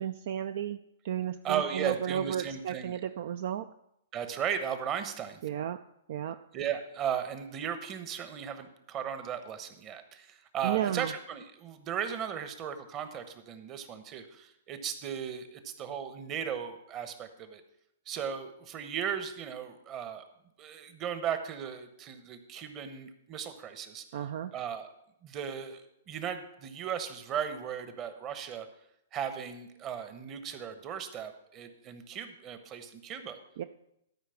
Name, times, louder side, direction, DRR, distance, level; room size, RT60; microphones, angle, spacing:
voice 1, 0.0-3.7 5.4-5.8 6.1-6.4 10.6-11.1 24.1-24.5 33.6-33.7, right 10 dB, 60° right, 10 dB, 0.4 m, -33 dB
voice 2, 1.4-3.0 4.1-5.4 6.5-17.6 18.1-20.2 20.6-24.0 24.5-24.9 25.2-25.8 26.1-28.7 29.1-33.4, right 8 dB, 30° right, 9 dB, 1.1 m, -36 dB
12.5 x 4.8 x 5.8 m, 0.79 s
hypercardioid pair, 120°, 0 cm